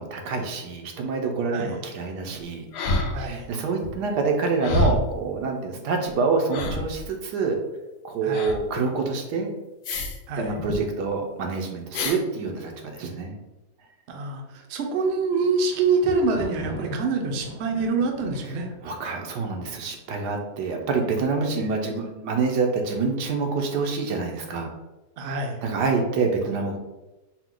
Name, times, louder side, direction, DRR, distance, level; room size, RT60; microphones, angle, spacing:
voice 1, 0.0-2.7 3.2-7.6 8.0-9.5 10.4-13.4 18.8-24.7 25.6-26.8, right 4 dB, 85° right, 2 dB, 1.3 m, -26 dB
sound 1, 2.7-3.5 3.8-4.0 4.6-5.2 6.1-6.2 6.5-7.1 8.3-8.6 9.8-10.2 10.5-10.8 11.9-12.2 13.0-13.1, left 2 dB, 75° left, 1.1 m, -27 dB
voice 2, 3.1-3.5 8.2-8.5 10.3-10.5 14.1-18.7 21.5-21.7 25.2-25.6, right 4 dB, 60° right, 2 dB, 0.7 m, -26 dB
Thunder, 15.2-20.1 20.9-21.4 21.6-21.7, equal, 10° left, 0.7 m, -40 dB
4.6 x 2.2 x 3.8 m, 1.1 s
omnidirectional pair, 1.7 m